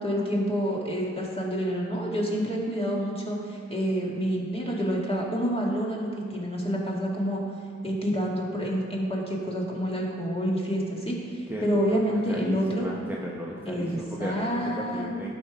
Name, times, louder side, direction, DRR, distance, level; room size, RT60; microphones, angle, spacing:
voice 1, 0.0-7.4 7.8-12.9 13.7-15.1, equal, 20° left, -4 dB, 2.1 m, -28 dB
voice 2, 11.5-15.3, right 1 dB, 5° right, -4 dB, 1.0 m, -35 dB
11.5 x 5.2 x 5.0 m, 2.2 s
wide cardioid pair, 60°, 29 cm